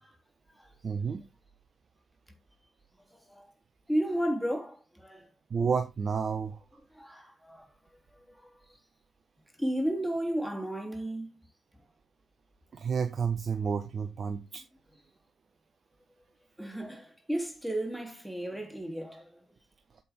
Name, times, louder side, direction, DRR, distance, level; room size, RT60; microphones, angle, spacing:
voice 1, 0.8-1.2 5.5-6.6 12.7-14.6, right 6 dB, 45° right, 1.1 m, -30 dB
voice 2, 3.9-5.3 6.9-7.6 8.4-8.5 9.6-11.3 16.6-19.3, right 1 dB, ahead, 3.4 m, -33 dB
8.3 x 7.8 x 3.7 m
hypercardioid pair, 40°, 0 cm